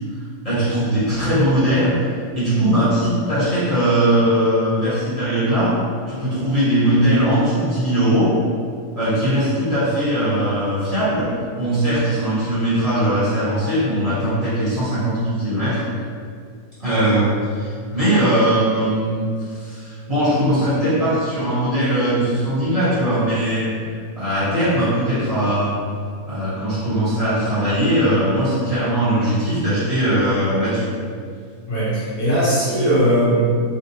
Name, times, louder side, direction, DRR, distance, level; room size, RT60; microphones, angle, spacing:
voice 1, 0.4-1.9 2.3-5.7 6.1-8.3 8.9-11.3 11.6-15.8 16.8-23.7 24.2-25.8 26.3-30.8, right 1 dB, 25° right, -14 dB, 1.2 m, -20 dB
voice 2, 31.7-33.3, equal, 75° left, -10 dB, 1.6 m, -19 dB
3.7 x 2.3 x 2.8 m, 2.1 s
omnidirectional pair, 1.6 m